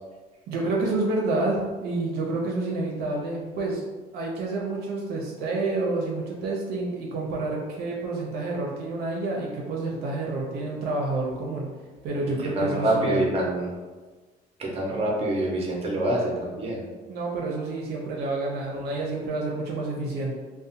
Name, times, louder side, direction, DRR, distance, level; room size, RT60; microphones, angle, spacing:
voice 1, 0.5-3.8 4.1-11.7 12.0-13.2 17.1-20.3, right 2 dB, 70° right, -2 dB, 0.5 m, -29 dB
voice 2, 12.5-13.7 14.6-16.8, right 1 dB, 35° right, -2 dB, 0.7 m, -25 dB
2.6 x 2.1 x 2.7 m, 1.3 s
cardioid pair, 110°, 17 cm